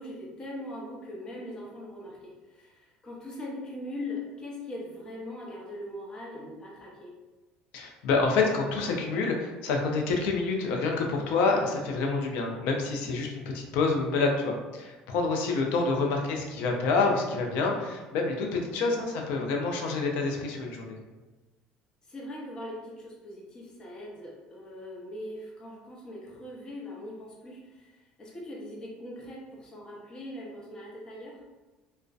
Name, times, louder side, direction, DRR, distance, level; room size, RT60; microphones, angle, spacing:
voice 1, 0.0-7.1 18.6-18.9 22.1-31.4, left 1 dB, 25° left, -3 dB, 0.6 m, -41 dB
voice 2, 7.7-21.0, left 3 dB, 75° left, 1 dB, 0.4 m, -27 dB
2.5 x 2.1 x 2.3 m, 1.2 s
cardioid pair, 120°, 3 cm